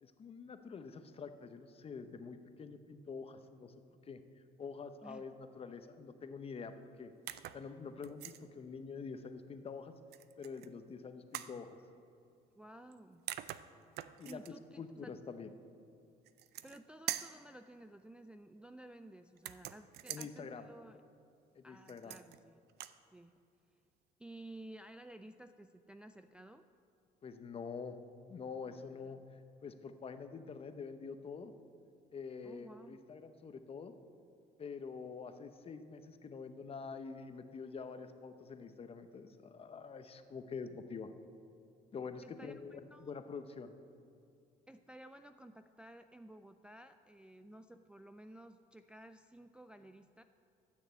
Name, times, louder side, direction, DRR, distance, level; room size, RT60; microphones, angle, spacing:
voice 1, 0.0-3.7 4.1-4.2 4.6-7.1 7.5-9.9 10.4-11.8 14.2-14.4 14.8-15.5 20.1-20.7 21.5-22.2 27.2-28.0 28.3-31.5 32.1-33.9 34.6-41.1 41.9-43.7, left 5 dB, 35° left, 9 dB, 0.8 m, -46 dB
sound 1, 7.3-7.6 8.0-8.4 10.1-10.7 11.3-11.6 12.9-13.0 13.3-14.5 16.3-16.8 17.1-17.4 19.4-20.3 21.9-22.4 22.7-23.0, right 13 dB, 70° right, 0.5 m, -44 dB
voice 2, 12.5-13.2 14.2-15.1 16.6-21.0 21.6-22.6 23.1-23.3 24.2-26.7 29.0-29.3 32.4-33.0 42.2-43.1 44.7-50.2, right 1 dB, 5° right, 7 dB, 0.3 m, -54 dB
12.5 x 6.5 x 8.2 m, 2.6 s
cardioid pair, 110°, 17 cm